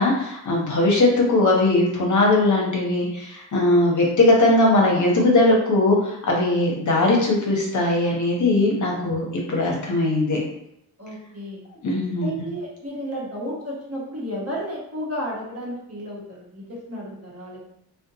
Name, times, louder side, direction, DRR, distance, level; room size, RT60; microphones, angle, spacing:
voice 1, 0.0-10.4 11.8-12.3, left 2 dB, 45° left, -1 dB, 0.8 m, -19 dB
voice 2, 11.0-11.6 12.2-17.6, equal, 35° right, -4 dB, 1.1 m, -32 dB
2.5 x 2.2 x 2.7 m, 0.78 s
supercardioid pair, 55°, 42 cm